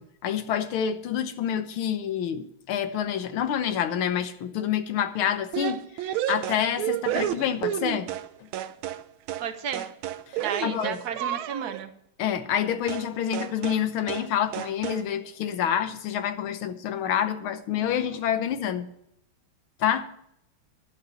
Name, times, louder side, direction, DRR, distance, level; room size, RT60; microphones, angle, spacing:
voice 1, 0.0-8.1 10.3-11.0 12.2-18.9 19.8-20.1, left 9 dB, 85° left, 10 dB, 1.8 m, -28 dB
sound 1, 5.5-8.3 8.5-9.0 9.3-9.5 9.7-11.8 12.9-13.1 13.3-13.8 14.1-14.3 14.5-15.0, right 12 dB, 80° right, 1.5 m, -31 dB
voice 2, 9.4-9.9 10.4-11.9, right 7 dB, 55° right, 8 dB, 1.5 m, -33 dB
11.5 x 7.1 x 7.0 m, 0.76 s
omnidirectional pair, 2.2 m